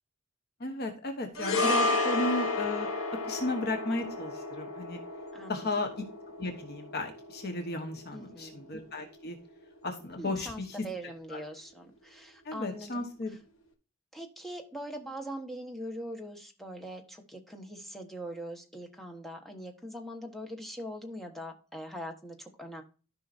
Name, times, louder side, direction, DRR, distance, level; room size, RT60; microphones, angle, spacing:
voice 1, 0.6-2.9 3.3-5.0 5.5-6.1 6.4-9.4 9.8-10.7 11.3-11.4 12.4-13.3, left 2 dB, 50° left, 1.2 m, -34 dB
sound 1, 1.3-9.8 10.1-10.3, left 2 dB, 70° left, 1.6 m, -33 dB
voice 2, 5.3-5.7 8.1-8.6 10.2-13.4 14.1-22.8, equal, ahead, 1.3 m, -42 dB
13.5 x 5.6 x 2.6 m
head